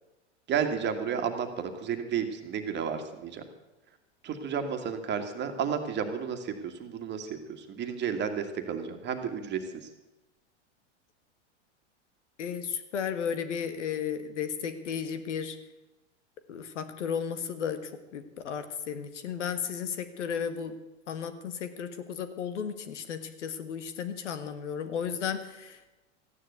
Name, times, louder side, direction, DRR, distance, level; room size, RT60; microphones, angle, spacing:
voice 1, 0.5-3.4 4.2-9.6, right 7 dB, 30° right, 7 dB, 2.0 m, -32 dB
voice 2, 12.4-15.6 16.5-20.7 21.1-25.8, left 7 dB, 80° left, 11 dB, 1.7 m, -34 dB
14.5 x 10.0 x 8.2 m, 1.0 s
hypercardioid pair, 110°, 35 cm